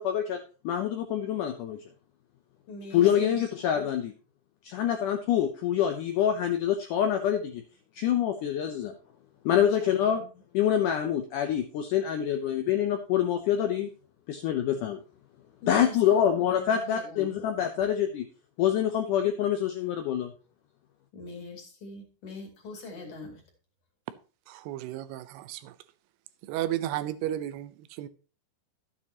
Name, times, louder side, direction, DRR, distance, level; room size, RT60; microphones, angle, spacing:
voice 1, 0.0-1.8 2.9-4.1 4.6-7.6 8.0-8.9 9.5-10.2 10.5-13.9 14.3-15.0 15.7-18.3 18.6-20.3, left 10 dB, 80° left, 1.9 m, -26 dB
voice 2, 2.7-3.4 3.7-3.9 9.5-10.3 15.6-17.4 21.1-23.4, left 2 dB, 55° left, 3.7 m, -42 dB
voice 3, 24.5-25.8 26.4-28.1, right 13 dB, 85° right, 2.7 m, -33 dB
12.5 x 8.6 x 2.9 m
omnidirectional pair, 4.6 m